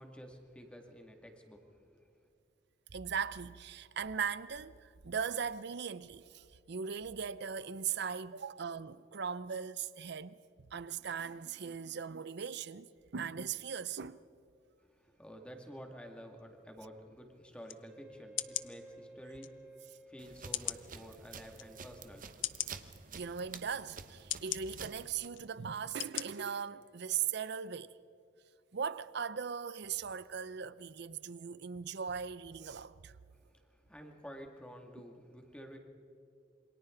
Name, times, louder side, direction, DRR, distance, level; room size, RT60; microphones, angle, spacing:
voice 1, 0.0-1.6 1.9-2.1 14.8-22.7 33.3-35.8, equal, 5° left, 2.2 m, -51 dB
voice 2, 2.9-14.2 23.1-28.0 28.7-33.2, right 7 dB, 65° right, 0.6 m, -39 dB
sound 1, 17.7-17.8 18.4-18.7 19.4-19.5 20.5-20.8 21.5-21.6 22.4-22.7 23.5-23.6 24.3-24.6 25.3-25.5 26.0-26.2 26.7-26.8, left 14 dB, 80° left, 0.6 m, -37 dB
Wind instrument woodwind instrument, 17.9-22.9, right 1 dB, 10° right, 2.8 m, -56 dB
sound 2, 20.2-25.3, right 6 dB, 45° right, 1.0 m, -50 dB
27.5 x 24.0 x 3.9 m
head